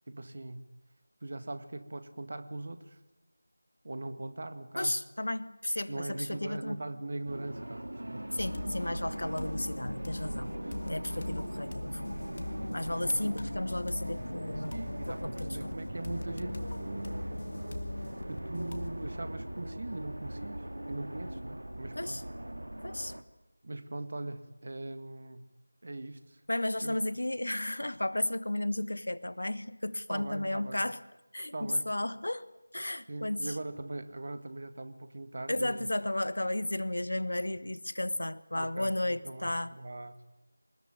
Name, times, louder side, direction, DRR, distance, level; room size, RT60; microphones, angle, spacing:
voice 1, 0.1-0.6 1.2-3.0 3.8-4.9 5.9-8.3 13.0-13.2 14.7-17.4 18.3-22.2 23.6-25.4 25.8-26.4 26.8-27.0 30.1-30.8 31.5-31.8 33.1-35.9 38.5-40.2, right 2 dB, 45° right, 9 dB, 1.9 m, -41 dB
voice 2, 4.7-6.8 8.3-10.5 10.8-12.2 12.7-15.7 21.9-22.2 22.8-23.1 26.5-31.0 31.3-32.5 32.7-33.6 35.5-39.8, left 1 dB, 65° left, 15 dB, 1.4 m, -33 dB
sound 1, 7.3-23.2, right 1 dB, 70° right, 1.9 m, -40 dB
sound 2, 8.4-19.0, left 2 dB, 40° left, 1.7 m, -41 dB
24.0 x 20.0 x 9.5 m, 0.99 s
figure-of-eight pair, 165°, 0 cm